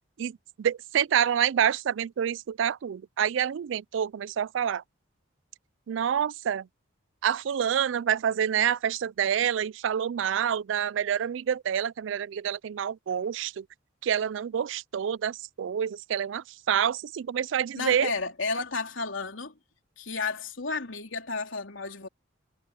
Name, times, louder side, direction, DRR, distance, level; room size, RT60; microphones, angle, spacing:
voice 1, 0.2-4.8 5.9-6.7 7.2-13.7 14.0-18.1, right 9 dB, 70° right, 0.3 m, -27 dB
voice 2, 17.7-19.5 20.0-22.1, left 4 dB, 85° left, 3.3 m, -32 dB
head